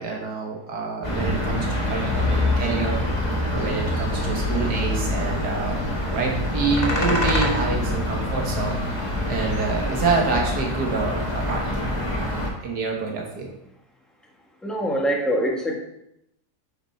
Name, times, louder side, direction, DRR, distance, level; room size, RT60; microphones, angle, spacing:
voice 1, 0.0-3.0 3.5-5.8 6.1-8.8 9.3-11.9 12.6-13.5, right 4 dB, 85° right, 0 dB, 1.9 m, -27 dB
sound 1, 1.0-12.5, left 1 dB, 25° left, 1.7 m, -25 dB
voice 2, 14.6-15.8, equal, ahead, 0 dB, 1.2 m, -25 dB
9.9 x 5.5 x 4.4 m, 0.81 s
omnidirectional pair, 1.7 m